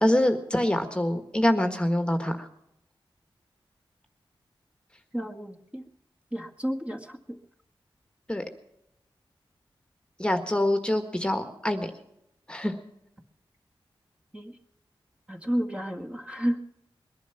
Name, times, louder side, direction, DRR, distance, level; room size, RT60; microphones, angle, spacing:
voice 1, 0.0-2.5 8.3-8.4 10.2-11.9 12.5-12.7, left 1 dB, 10° left, 6 dB, 1.6 m, -25 dB
voice 2, 5.1-5.8 6.3-7.2 14.3-14.5 15.3-16.6, equal, 15° right, 2 dB, 1.7 m, -31 dB
21.5 x 11.5 x 5.9 m, 0.81 s
wide cardioid pair, 95°, 9 cm